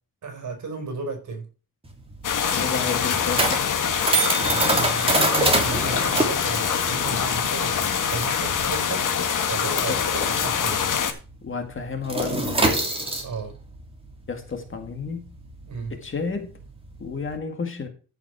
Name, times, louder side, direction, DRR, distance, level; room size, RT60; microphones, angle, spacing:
voice 1, 0.2-1.5 4.3-7.8 8.1-9.0 9.4-10.9 13.2-13.5 15.7-15.9, right 4 dB, 50° right, 4.6 m, -34 dB
sound 1, 1.8-10.8 11.1-11.3 11.6-17.4, right 2 dB, 15° right, 2.8 m, -26 dB
sound 2, 2.2-11.1, left 7 dB, 60° left, 1.8 m, -24 dB
voice 2, 2.4-3.7 9.9-10.0 11.4-12.8 14.3-15.3 16.0-16.6 17.0-17.9, left 5 dB, 35° left, 1.9 m, -31 dB
14.0 x 5.8 x 4.7 m
wide cardioid pair, 160°, 36 cm